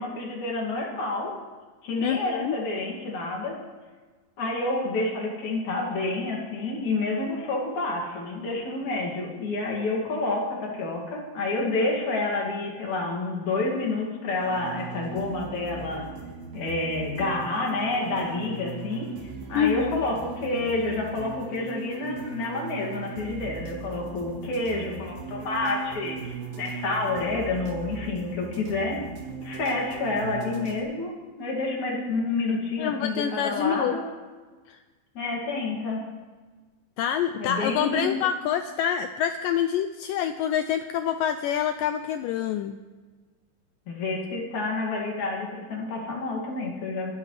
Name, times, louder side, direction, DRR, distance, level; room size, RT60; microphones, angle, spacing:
voice 1, 0.0-1.3 1.8-3.6 4.4-16.0 16.5-29.0 29.4-31.1 31.4-34.0 35.1-36.0 37.4-38.2 43.9-47.1, left 2 dB, 55° left, -1 dB, 3.5 m, -29 dB
voice 2, 2.0-2.6 19.6-20.0 32.8-34.0 34.7-34.8 37.0-42.7, left 9 dB, 85° left, 9 dB, 1.9 m, -26 dB
sound 1, 14.3-30.8, right 5 dB, 65° right, 3.8 m, -39 dB
24.5 x 12.5 x 3.3 m, 1.4 s
omnidirectional pair, 4.4 m